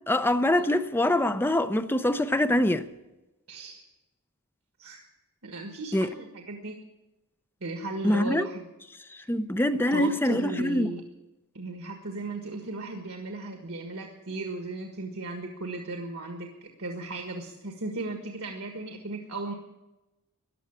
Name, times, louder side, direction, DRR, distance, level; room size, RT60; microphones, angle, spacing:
voice 1, 0.1-2.9 5.9-6.1 8.0-8.5 9.3-10.9, left 1 dB, 10° left, 0.5 m, -24 dB
voice 2, 3.5-3.8 4.8-5.0 5.4-6.7 7.6-8.7 9.9-11.0 11.5-19.5, right 2 dB, 70° right, 1.7 m, -36 dB
15.0 x 10.5 x 8.6 m
head